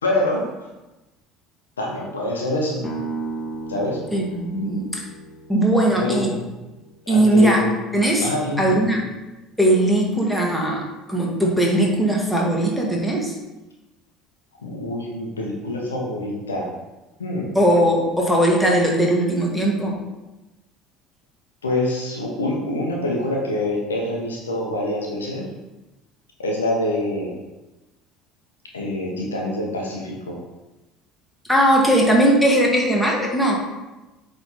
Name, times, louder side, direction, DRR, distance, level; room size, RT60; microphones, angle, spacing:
voice 1, 0.0-0.5 1.8-2.8 3.7-4.0 6.0-6.4 7.1-7.7 8.2-8.8 14.6-16.7 17.2-17.5 21.6-25.5 26.4-27.3 28.7-30.4, left 1 dB, 80° left, -1 dB, 1.1 m, -25 dB
sound 1, 2.8-8.6, right 3 dB, 35° left, 1.1 m, -36 dB
voice 2, 4.1-5.0 5.5-6.3 7.1-7.6 7.9-8.3 8.6-9.1 9.6-13.3 17.5-20.0 31.5-33.6, right 1 dB, 5° left, -2 dB, 1.8 m, -19 dB
8.0 x 3.6 x 4.2 m, 1.1 s
figure-of-eight pair, 65°, 0 cm